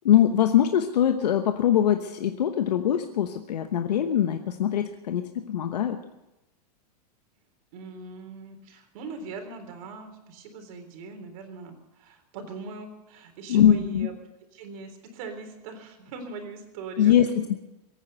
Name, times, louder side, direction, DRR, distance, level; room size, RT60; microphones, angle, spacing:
voice 1, 0.0-6.0 13.5-14.1 17.0-17.6, left 10 dB, 90° left, 7 dB, 1.0 m, -22 dB
voice 2, 7.7-14.1 14.5-17.3, right 4 dB, 60° right, 5 dB, 3.8 m, -40 dB
22.0 x 9.6 x 6.7 m, 0.97 s
hypercardioid pair, 130°, 20 cm